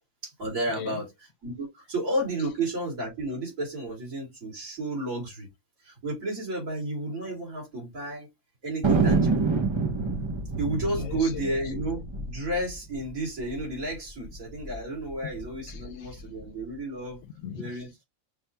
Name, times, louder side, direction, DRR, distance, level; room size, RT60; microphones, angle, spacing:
voice 1, 0.2-1.1 1.4-5.5 5.8-8.3 8.6-9.5 10.6-12.0 12.3-17.2 17.6-17.9, right 1 dB, 85° right, 2.9 m, -32 dB
Thunder, 8.8-13.7 13.9-14.0 14.2-14.8 15.3-16.5, right 4 dB, 40° right, 0.4 m, -27 dB
voice 2, 11.0-11.7 15.2-15.3 15.7-16.2 17.0-18.0, left 10 dB, 75° left, 0.9 m, -41 dB
6.2 x 2.2 x 2.7 m
omnidirectional pair, 1.4 m